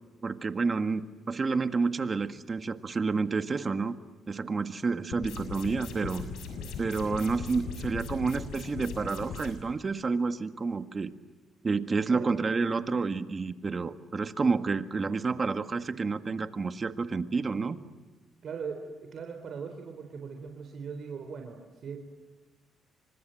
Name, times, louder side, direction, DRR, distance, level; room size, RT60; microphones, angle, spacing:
voice 1, 0.2-4.0 4.3-6.2 6.8-11.1 11.6-17.8, right 4 dB, 35° right, 10 dB, 1.8 m, -29 dB
sound 1, 5.1-9.5, left 5 dB, 85° left, 6.8 m, -39 dB
voice 2, 18.4-22.0, right 5 dB, 60° right, 4 dB, 3.9 m, -39 dB
29.0 x 25.5 x 7.8 m, 1.3 s
cardioid pair, 90°, 0 cm